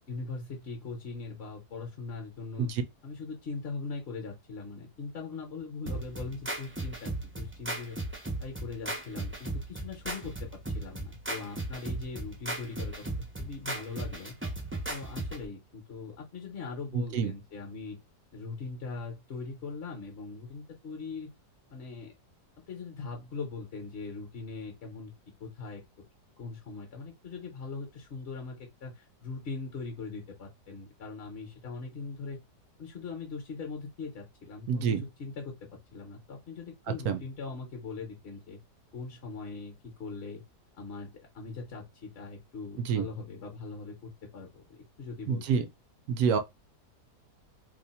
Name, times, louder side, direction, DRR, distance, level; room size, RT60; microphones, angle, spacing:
voice 1, 0.1-2.7 3.0-13.0 13.4-14.3 14.9-18.0 18.3-21.3 21.7-22.1 22.6-25.1 25.4-25.8 26.4-28.5 28.8-32.4 32.8-35.5 35.9-38.6 38.9-40.4 40.8-45.6, left 4 dB, 50° left, 0.8 m, -41 dB
sound 1, 5.9-15.5, right 2 dB, 15° right, 0.4 m, -36 dB
voice 2, 16.9-17.3 34.7-35.0 37.0-37.2 42.8-43.1 45.3-45.7 46.1-46.4, right 6 dB, 70° right, 1.0 m, -27 dB
2.8 x 2.1 x 4.0 m
omnidirectional pair, 1.8 m